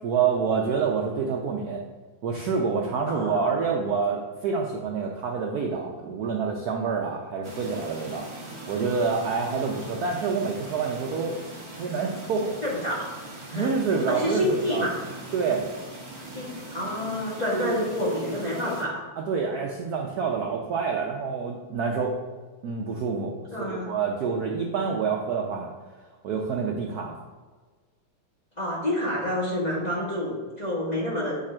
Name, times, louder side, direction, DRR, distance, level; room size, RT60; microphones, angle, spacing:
voice 1, 0.0-1.8 2.2-8.3 8.7-11.4 11.8-12.6 13.5-14.8 15.3-15.6 17.5-17.8 19.2-22.2 22.6-25.7 26.2-27.1, right 5 dB, 80° right, 1 dB, 0.8 m, -27 dB
voice 2, 3.1-3.6 12.6-13.1 13.4-13.7 14.1-15.0 16.3-19.0 23.5-23.9 28.6-31.4, left 1 dB, 20° left, -6 dB, 1.3 m, -28 dB
sound 1, 7.4-18.8, right 1 dB, 20° right, 0.9 m, -41 dB
8.0 x 3.7 x 4.3 m, 1.4 s
omnidirectional pair, 2.4 m